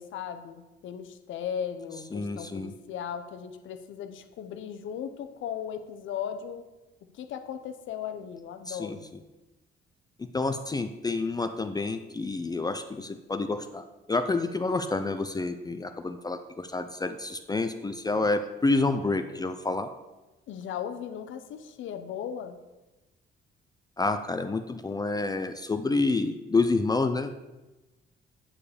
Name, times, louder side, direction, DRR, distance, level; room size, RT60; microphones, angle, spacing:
voice 1, 0.0-6.6 7.1-9.0 20.5-22.6, left 8 dB, 75° left, 8 dB, 0.7 m, -37 dB
voice 2, 2.1-2.7 8.7-9.0 10.3-19.9 24.0-27.3, left 3 dB, 20° left, 8 dB, 0.4 m, -28 dB
8.6 x 4.8 x 4.9 m, 1.1 s
cardioid pair, 90°, 20 cm